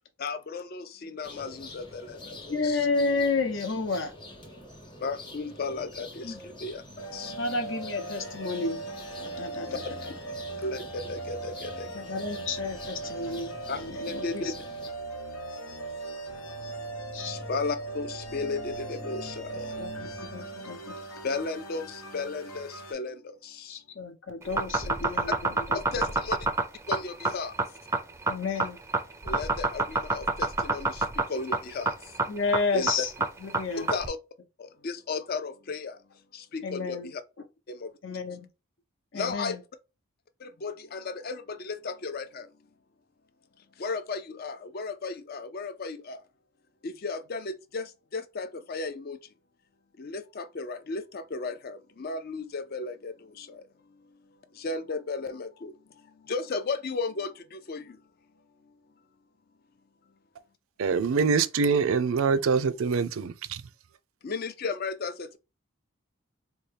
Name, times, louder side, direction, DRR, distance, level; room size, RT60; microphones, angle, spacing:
voice 1, 0.2-2.2 2.6-2.8 5.0-6.2 6.6-6.8 7.1-7.3 10.6-11.9 13.7-13.8 14.1-14.5 17.3-19.5 21.2-21.9 22.1-23.2 25.7-26.4 26.9-27.5 29.3-30.9 31.3-31.9 32.7-32.9 33.8-34.2 34.8-35.9 36.5-37.0 39.1-39.5 40.6-42.4 43.8-46.2 46.8-47.8 48.1-49.2 50.0-53.1 54.6-55.7 56.3-57.3 57.7-57.8 64.2-65.4, left 4 dB, 45° left, 0.4 m, -34 dB
sound 1, 1.2-14.9, left 2 dB, 20° left, 0.9 m, -47 dB
voice 2, 2.5-4.1 6.2-6.4 7.3-8.8 9.2-10.1 11.9-14.5 17.1-17.3 19.8-20.9 23.7-26.2 28.3-28.8 32.3-33.1 33.4-33.9 36.6-37.1 38.0-38.5 39.1-39.6, left 3 dB, 65° left, 0.8 m, -31 dB
sound 2, 7.0-22.9, right 2 dB, 85° left, 1.1 m, -39 dB
sound 3, 24.4-34.1, right 3 dB, 15° right, 0.4 m, -27 dB
voice 3, 60.8-63.6, right 5 dB, 75° right, 0.4 m, -24 dB
4.2 x 2.2 x 3.3 m
head